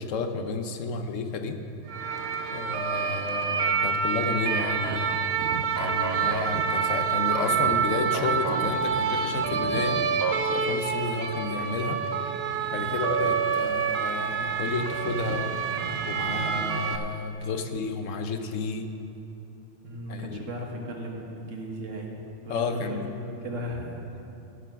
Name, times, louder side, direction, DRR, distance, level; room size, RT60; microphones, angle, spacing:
voice 1, 0.0-1.6 2.5-5.1 5.6-10.0 10.5-12.0 12.7-15.6 16.1-18.9 20.1-20.4 22.5-23.1, left 4 dB, 85° left, 6 dB, 1.2 m, -31 dB
sound 1, 1.9-17.0, right 6 dB, 60° right, 0.8 m, -27 dB
voice 2, 12.7-13.0 19.8-24.0, equal, 80° right, 0 dB, 1.7 m, -37 dB
13.0 x 6.9 x 6.1 m, 2.8 s
omnidirectional pair, 1.3 m